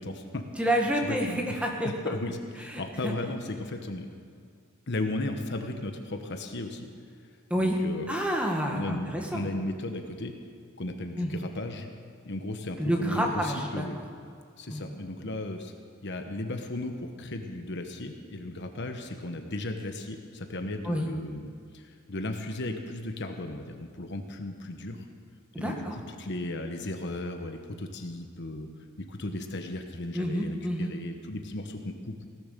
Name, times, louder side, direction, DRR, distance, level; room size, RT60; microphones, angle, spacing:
voice 1, 0.0-0.4 1.1-1.5 1.8-4.1 4.9-6.9 7.6-8.1 8.7-10.3 10.8-11.9 12.2-14.0 14.6-15.8 16.0-25.0 25.6-25.8 26.2-28.7 29.0-32.3, left 2 dB, 55° left, 5 dB, 1.2 m, -35 dB
voice 2, 0.6-1.4 1.6-1.9 2.7-3.1 7.5-7.8 8.1-9.5 11.2-11.4 12.8-13.8 14.7-14.8 20.8-21.1 25.5-26.0 30.1-30.9, equal, 5° right, 0 dB, 1.8 m, -29 dB
17.5 x 11.0 x 6.9 m, 2.3 s
head